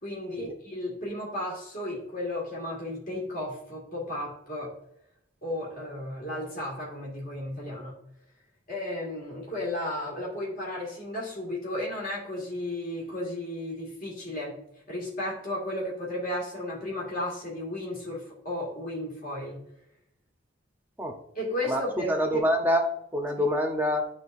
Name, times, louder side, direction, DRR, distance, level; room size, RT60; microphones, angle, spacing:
voice 1, 0.0-4.7 5.4-8.0 8.7-14.6 14.9-19.6 21.4-22.4, left 1 dB, 45° left, -3 dB, 2.1 m, -34 dB
voice 2, 21.7-24.1, equal, 10° right, 3 dB, 0.8 m, -26 dB
11.5 x 3.9 x 2.6 m, 0.75 s
head